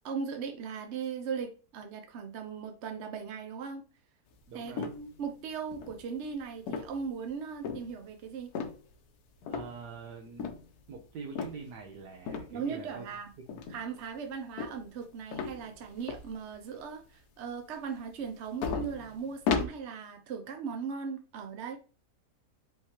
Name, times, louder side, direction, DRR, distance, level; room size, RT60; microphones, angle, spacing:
voice 1, 0.0-3.8 4.5-8.5 12.5-13.3 13.7-21.8, right 6 dB, 60° right, 0.8 m, -38 dB
voice 2, 4.5-4.9 9.5-13.1, right 5 dB, 90° right, 1.4 m, -45 dB
sound 1, 4.8-5.3 5.7-6.2 6.7-7.1 7.6-7.9 8.5-8.9 9.4-10.0 10.4-10.7 11.4-11.6 12.3-12.5 13.5-14.0 14.6-15.1 15.3-16.3 16.7-16.8 18.3-18.4 18.6-19.7, left 5 dB, 75° left, 1.2 m, -34 dB
5.4 x 3.2 x 2.9 m
omnidirectional pair, 1.7 m